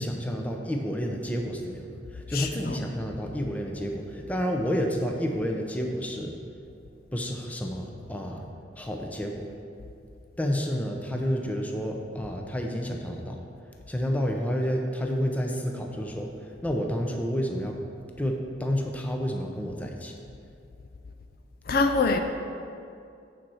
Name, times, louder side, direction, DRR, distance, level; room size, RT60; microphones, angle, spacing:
voice 1, 0.0-1.8 2.1-6.4 7.1-8.4 8.8-9.5 10.4-13.4 13.9-16.3 16.6-17.8 18.2-20.1, equal, 10° left, 2 dB, 0.6 m, -30 dB
voice 2, 2.3-2.8 21.7-22.2, left 3 dB, 50° left, 5 dB, 0.4 m, -24 dB
8.9 x 4.3 x 6.2 m, 2.5 s
head